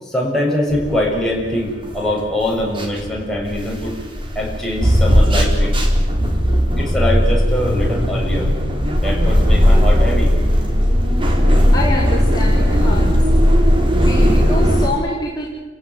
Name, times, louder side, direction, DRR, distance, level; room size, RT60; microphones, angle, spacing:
voice 1, 0.0-4.0 4.3-5.7 6.8-8.5 9.0-10.3, left 1 dB, ahead, -4 dB, 7.5 m, -22 dB
sound 1, 0.7-14.9, equal, 30° right, 4.1 m, -16 dB
voice 2, 6.5-6.9 11.7-13.2 14.0-15.5, left 1 dB, 20° left, -4 dB, 4.5 m, -26 dB
30.0 x 16.5 x 9.6 m, 1.2 s
head